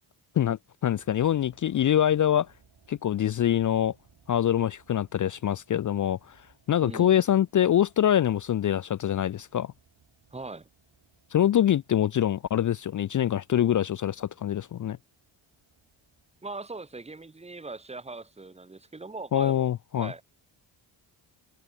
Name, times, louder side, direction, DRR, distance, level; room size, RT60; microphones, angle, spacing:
voice 1, 0.4-2.5 2.9-3.9 4.3-6.3 6.7-9.7 11.3-15.0 19.3-20.1, left 10 dB, 40° left, 0.4 m, -24 dB
sound 1, 0.9-19.1 19.4-19.5, right 6 dB, 50° right, 6.4 m, -65 dB
voice 2, 6.8-7.2 10.3-10.7 16.4-20.2, right 3 dB, 15° right, 1.0 m, -40 dB
cardioid pair, 65°, 49 cm